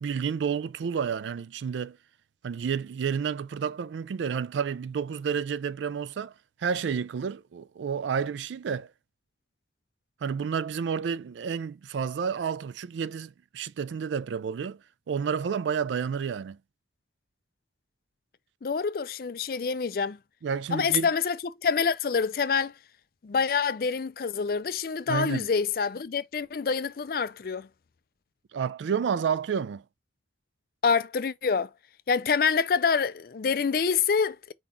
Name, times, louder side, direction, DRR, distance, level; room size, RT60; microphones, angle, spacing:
voice 1, 0.0-2.0 2.4-6.3 6.6-8.9 10.2-14.8 15.1-16.6 20.4-21.1 25.1-25.5 28.5-29.8, right 6 dB, 85° right, 0.3 m, -30 dB
voice 2, 18.6-20.2 20.7-22.7 23.2-27.7 30.8-31.7 32.1-34.5, left 5 dB, 55° left, 0.4 m, -26 dB
4.8 x 3.8 x 2.6 m
head